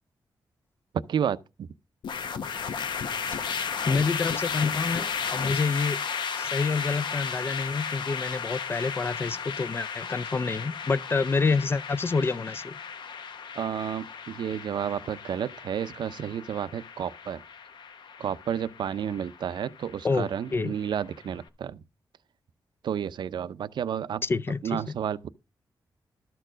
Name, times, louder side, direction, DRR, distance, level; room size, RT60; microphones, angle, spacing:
voice 1, 1.1-1.7 13.6-17.4 18.2-21.8 22.8-24.2 24.6-25.3, right 8 dB, 70° right, 0.5 m, -31 dB
sound 1, 2.0-21.3, left 6 dB, 70° left, 0.9 m, -34 dB
voice 2, 3.9-6.0 6.4-12.8 20.0-20.7 24.2-24.8, left 4 dB, 30° left, 0.4 m, -28 dB
12.5 x 4.5 x 6.1 m
wide cardioid pair, 170°, 8 cm